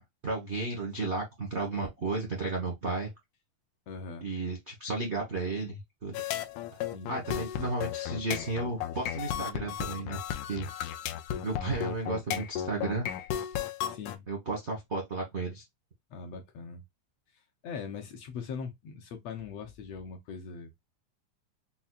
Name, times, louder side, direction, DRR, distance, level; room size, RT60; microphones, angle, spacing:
voice 1, 0.0-3.1 4.2-6.1 6.7-6.8 7.1-10.2 10.5-10.7 11.4-13.1 14.3-15.6, right 3 dB, 55° right, 0.7 m, -33 dB
voice 2, 3.9-4.3 6.9-7.2 13.9-14.2 16.1-16.8 17.3-20.7, left 5 dB, 70° left, 1.7 m, -41 dB
sound 1, 6.1-14.2, left 10 dB, 85° left, 2.0 m, -34 dB
5.6 x 2.3 x 2.4 m
omnidirectional pair, 3.4 m